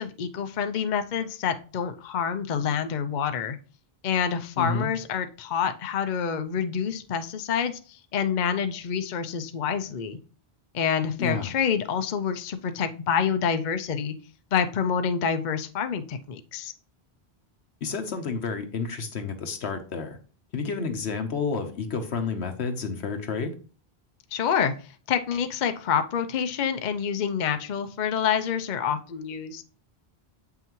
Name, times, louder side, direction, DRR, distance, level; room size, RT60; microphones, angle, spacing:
voice 1, 0.0-3.6 4.0-10.2 10.7-14.1 14.5-16.7 24.3-29.6, left 7 dB, 50° left, 8 dB, 0.7 m, -27 dB
voice 2, 4.6-4.9 11.2-11.5 17.8-20.2 20.5-23.5, left 4 dB, 85° left, 6 dB, 1.3 m, -30 dB
8.0 x 5.7 x 3.0 m, 0.38 s
omnidirectional pair, 1.1 m